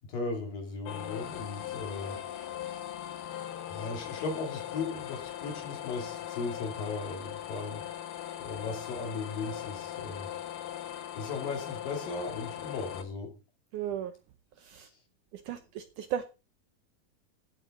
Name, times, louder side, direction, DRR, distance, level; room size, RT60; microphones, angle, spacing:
voice 1, 0.0-2.2 3.7-7.8 8.4-10.3 11.1-13.3 14.8-14.9, left 4 dB, 65° left, 4.4 m, -37 dB
sound 1, 0.9-13.0, left 11 dB, 80° left, 3.2 m, -40 dB
voice 2, 13.7-14.1 14.6-14.9 15.3-16.3, right 9 dB, 75° right, 2.0 m, -36 dB
15.5 x 8.3 x 3.8 m
omnidirectional pair, 4.3 m